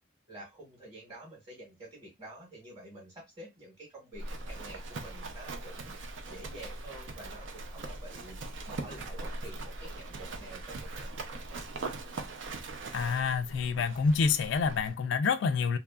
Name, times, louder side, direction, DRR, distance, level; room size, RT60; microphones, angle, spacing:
voice 1, 0.3-11.6, right 1 dB, 25° right, 1.0 m, -49 dB
Livestock farm animals working animals, 4.2-14.9, right 2 dB, 80° right, 0.5 m, -41 dB
voice 2, 12.9-15.8, left 5 dB, 70° left, 0.3 m, -27 dB
2.8 x 2.4 x 2.2 m
head